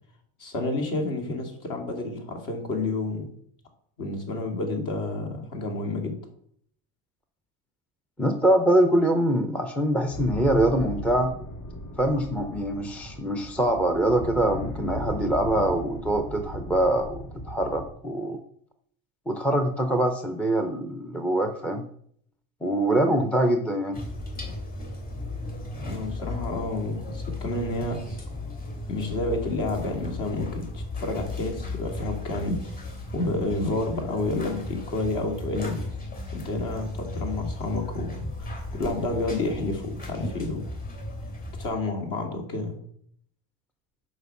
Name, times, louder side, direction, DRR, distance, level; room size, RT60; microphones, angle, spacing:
voice 1, 0.4-3.3 4.0-6.1 25.9-28.0 28.9-32.7 33.1-35.8 36.3-40.6 41.6-42.8, left 2 dB, 50° left, 3 dB, 2.7 m, -30 dB
voice 2, 8.2-11.3 12.0-18.4 19.3-21.8 22.6-24.0, right 1 dB, 5° left, 6 dB, 0.5 m, -24 dB
sound 1, 10.1-17.9, equal, 85° left, 4.1 m, -37 dB
sound 2, 23.9-41.7, left 2 dB, 20° left, 3.1 m, -35 dB
8.2 x 5.3 x 7.0 m, 0.65 s
cardioid pair, 145°, 41 cm